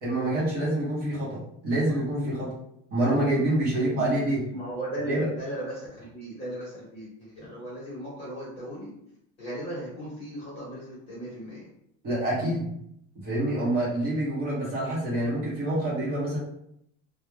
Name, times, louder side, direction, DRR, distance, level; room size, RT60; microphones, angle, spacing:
voice 1, 0.0-2.5 2.9-4.5 5.1-5.3 12.0-12.7 13.2-16.4, right 1 dB, 30° right, -7 dB, 0.7 m, -26 dB
voice 2, 4.5-8.9 9.4-11.7, right 1 dB, 20° left, -7 dB, 0.9 m, -37 dB
2.3 x 2.0 x 3.0 m, 0.74 s
cardioid pair, 180°, 31 cm